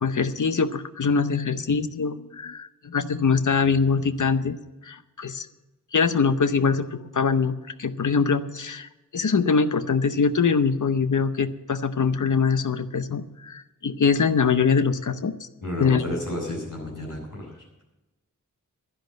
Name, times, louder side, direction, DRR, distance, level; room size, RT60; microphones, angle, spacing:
voice 1, 0.0-4.6 4.8-5.5 5.9-15.5 15.8-16.1, left 5 dB, 65° left, 11 dB, 0.8 m, -23 dB
voice 2, 15.6-17.8, left 1 dB, 85° left, -4 dB, 6.8 m, -32 dB
11.5 x 10.5 x 7.8 m, 1.0 s
wide cardioid pair, 85°, 32 cm